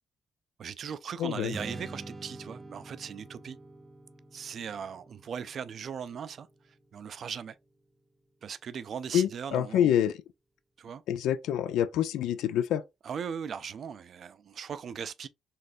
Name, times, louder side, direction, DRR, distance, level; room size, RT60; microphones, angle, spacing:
voice 1, 0.6-3.6 4.3-6.5 6.9-7.6 8.4-9.9 10.8-11.0 13.0-15.3, right 7 dB, 55° right, 0.3 m, -38 dB
voice 2, 1.2-1.6 9.1-10.2 11.1-12.8, left 10 dB, 85° left, 0.3 m, -27 dB
Strum, 1.5-7.8, right 2 dB, 15° right, 0.6 m, -47 dB
4.0 x 2.5 x 2.5 m
cardioid pair, 90°, 0 cm